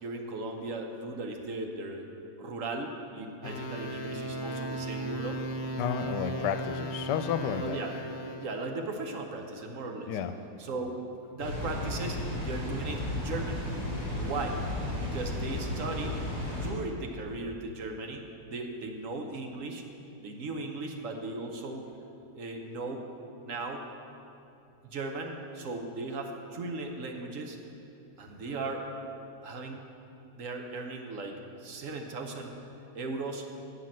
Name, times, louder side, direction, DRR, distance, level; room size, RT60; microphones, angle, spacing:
voice 1, 0.0-2.1 2.4-5.4 7.6-10.1 10.6-11.0 11.3-13.7 14.2-14.6 15.0-19.8 20.2-21.8 22.4-23.0 23.4-23.9 24.8-27.6 28.2-28.8 29.4-29.9 30.4-32.5 32.9-33.5, right 3 dB, 60° right, 3 dB, 1.1 m, -37 dB
sound 1, 3.4-8.7, right 1 dB, 55° left, 0.5 m, -36 dB
voice 2, 5.8-7.8 10.1-10.3, left 8 dB, 85° left, 9 dB, 1.2 m, -31 dB
Water, 11.4-16.7, left 1 dB, 40° left, 3.0 m, -34 dB
8.1 x 5.8 x 7.6 m, 2.7 s
omnidirectional pair, 1.8 m